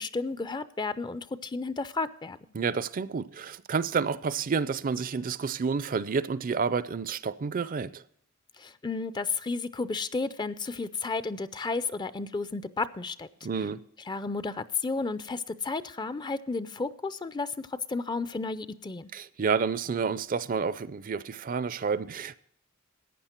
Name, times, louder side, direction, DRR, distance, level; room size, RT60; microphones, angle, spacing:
voice 1, 0.0-2.4 8.6-13.3 14.1-19.1, left 3 dB, 20° left, 0.4 m, -32 dB
voice 2, 2.5-8.0 13.4-13.8 19.1-22.3, right 5 dB, 40° right, 0.4 m, -29 dB
14.5 x 9.7 x 4.4 m
head